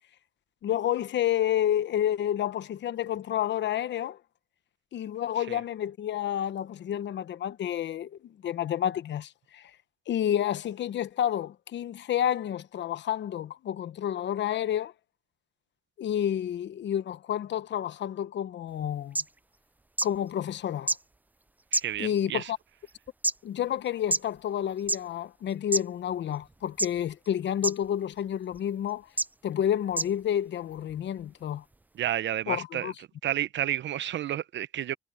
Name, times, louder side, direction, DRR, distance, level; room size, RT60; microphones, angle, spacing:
voice 1, 0.6-4.2 4.9-9.6 10.1-14.9 16.0-19.2 20.0-20.9 22.0-22.6 23.4-29.1 29.4-31.6 32.5-32.9, left 10 dB, 65° left, 1.0 m, -30 dB
sound 1, 18.8-18.9 19.1-19.2 20.0-20.1 20.9-21.0 21.7-22.2 22.9-23.3 24.1-24.2 24.8-25.0 25.7-25.8 26.8-27.1 27.6-27.7 28.5-28.6 29.2-29.3 29.9-30.1 30.9-31.0, right 2 dB, 10° right, 0.4 m, -26 dB
voice 2, 21.7-22.5 31.9-32.9 33.2-34.9, right 12 dB, 65° right, 0.8 m, -31 dB
cardioid pair, 90°, 20 cm